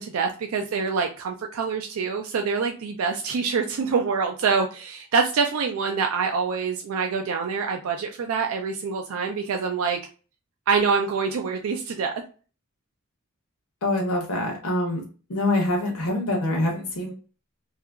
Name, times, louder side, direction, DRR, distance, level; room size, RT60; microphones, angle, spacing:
voice 1, 0.0-10.0 10.7-12.1, right 5 dB, 80° right, 4 dB, 0.4 m, -25 dB
voice 2, 13.8-15.0 15.3-17.1, left 1 dB, 90° left, -1 dB, 0.7 m, -25 dB
2.8 x 2.4 x 2.3 m, 0.37 s
head